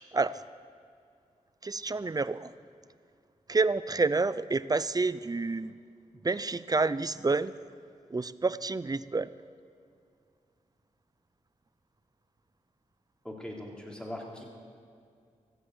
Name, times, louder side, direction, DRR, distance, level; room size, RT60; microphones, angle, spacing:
voice 1, 0.1-0.4 1.6-2.5 3.5-5.7 6.2-7.5 8.1-9.3, right 3 dB, 25° right, 16 dB, 0.5 m, -28 dB
voice 2, 13.2-14.4, left 1 dB, 5° left, -2 dB, 3.5 m, -40 dB
15.0 x 7.9 x 8.0 m, 2.3 s
cardioid pair, 45°, 14 cm